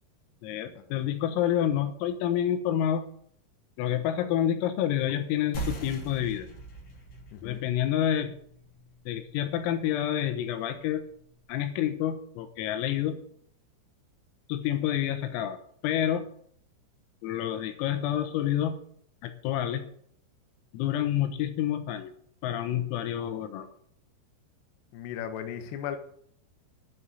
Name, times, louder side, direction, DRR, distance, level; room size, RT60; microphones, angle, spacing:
voice 1, 0.4-3.0 3.8-6.5 7.4-8.3 9.1-11.0 11.5-13.2 14.5-15.6 15.8-16.3 17.2-18.8 19.2-19.8 20.7-22.1 22.4-23.7, left 11 dB, 90° left, 8 dB, 3.9 m, -28 dB
sound 1, 5.5-10.7, right 3 dB, 40° left, 3.6 m, -42 dB
voice 2, 7.3-7.7 24.9-26.0, left 9 dB, 70° left, 6 dB, 2.9 m, -36 dB
10.5 x 7.1 x 9.1 m, 0.63 s
omnidirectional pair, 5.9 m